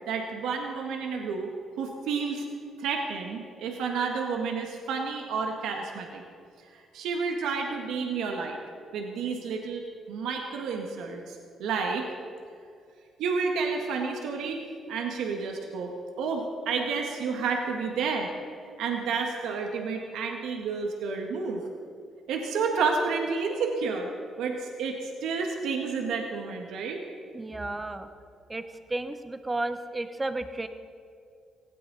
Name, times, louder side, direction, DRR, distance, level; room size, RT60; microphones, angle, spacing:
voice 1, 0.1-1.5 1.8-2.5 2.8-6.2 6.7-8.6 8.9-12.1 13.2-15.9 16.2-18.3 18.8-21.6 22.3-24.1 24.4-27.0, right 5 dB, 85° right, 2 dB, 1.7 m, -30 dB
voice 2, 27.3-28.1 28.5-28.6 28.9-30.7, right 2 dB, 20° right, 10 dB, 1.1 m, -32 dB
18.0 x 17.0 x 4.1 m, 2.3 s
cardioid pair, 90°, 0 cm